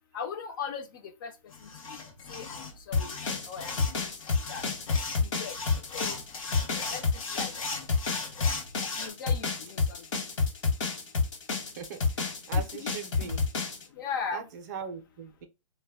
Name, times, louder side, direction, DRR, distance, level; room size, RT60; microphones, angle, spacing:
voice 1, 0.1-1.3 1.6-1.7 2.3-3.2 3.5-4.1 4.5-4.6 5.2-5.5 5.9-6.2 6.9-7.0 7.3-7.5 9.0-10.0 12.5-12.9 14.0-14.5, left 6 dB, 40° left, 0.4 m, -38 dB
sound 1, 1.5-9.1, left 4 dB, 80° left, 0.8 m, -38 dB
sound 2, 2.9-13.8, left 4 dB, 60° left, 1.0 m, -29 dB
voice 2, 12.5-13.4 14.3-15.5, right 7 dB, 35° right, 0.4 m, -39 dB
2.1 x 2.1 x 3.3 m
hypercardioid pair, 160°, 17 cm